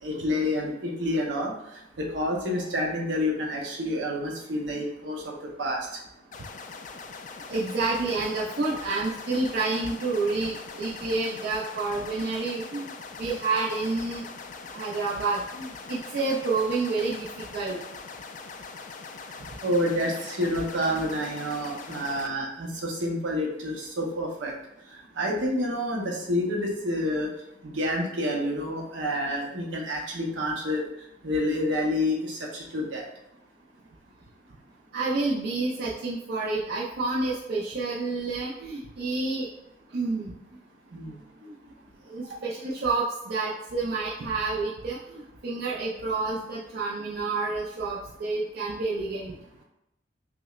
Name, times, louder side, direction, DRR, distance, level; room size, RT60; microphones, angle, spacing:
voice 1, 0.0-1.5 2.0-5.8 19.6-24.5 24.9-27.3 27.6-30.8 31.2-33.0 40.9-41.2, left 1 dB, 80° right, -1 dB, 0.8 m, -28 dB
sound 1, 6.3-22.3, left 4 dB, 45° left, 0.3 m, -42 dB
voice 2, 7.5-12.9 13.2-14.2 14.7-17.3 17.5-17.8 19.4-19.5 34.9-39.5 39.9-40.3 41.4-41.5 42.1-49.3, right 3 dB, 60° right, -5 dB, 0.5 m, -29 dB
5.8 x 2.1 x 2.4 m, 0.87 s
head